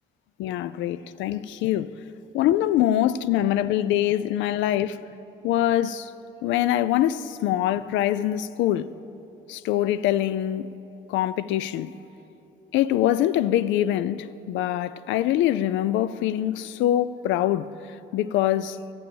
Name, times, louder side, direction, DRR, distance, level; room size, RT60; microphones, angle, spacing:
voice 1, 0.4-1.9 2.3-5.0 5.4-6.1 6.4-8.9 9.5-10.7 11.1-11.9 12.7-17.7 18.1-18.8, left 12 dB, 90° left, 0.4 m, -24 dB
12.0 x 8.6 x 7.1 m
cardioid pair, 125°, 19 cm